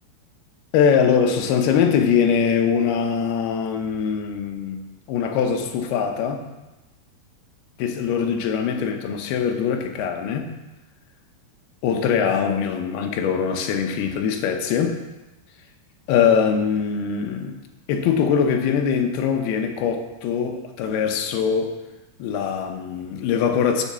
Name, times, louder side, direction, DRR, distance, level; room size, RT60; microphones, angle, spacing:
voice 1, 0.7-4.8 5.1-6.4 7.8-10.5 11.8-15.0 16.1-17.6 17.9-21.8 22.2-23.8, left 7 dB, 75° left, 5 dB, 2.7 m, -22 dB
7.5 x 7.0 x 7.3 m, 1.1 s
omnidirectional pair, 4.8 m